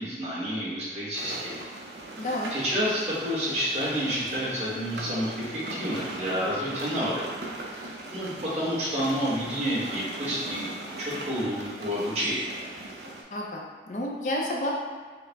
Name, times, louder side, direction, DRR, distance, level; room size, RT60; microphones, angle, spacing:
voice 1, 0.0-1.6 2.5-7.3 7.7-10.7 11.0-12.5, equal, 35° right, -7 dB, 1.2 m, -29 dB
sound 1, 1.1-13.2, right 2 dB, 75° right, 0.7 m, -39 dB
voice 2, 2.2-2.5 13.3-14.7, left 1 dB, 45° left, -2 dB, 0.5 m, -30 dB
5.5 x 2.1 x 3.4 m, 1.5 s
head